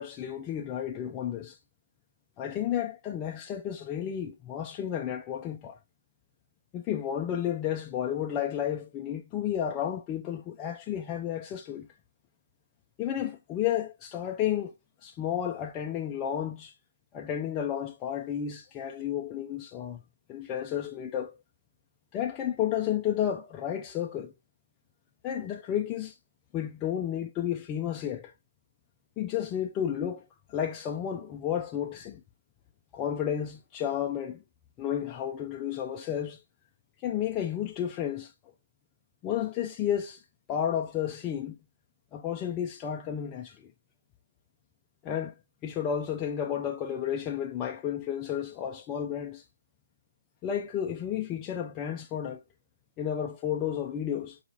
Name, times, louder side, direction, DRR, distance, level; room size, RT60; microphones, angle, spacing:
voice 1, 0.0-1.6 2.4-5.8 6.7-11.9 13.0-14.7 15.0-16.7 17.1-20.0 20.3-21.4 22.1-24.3 25.2-26.1 26.5-28.3 29.2-32.2 32.9-34.4 34.8-36.4 37.0-38.3 39.2-40.2 40.5-41.6 42.1-43.7 45.0-45.3 45.6-49.4 50.4-52.4 53.0-54.4, left 9 dB, 15° left, 0.3 m, -32 dB
4.6 x 2.9 x 2.7 m
hypercardioid pair, 155°, 0 cm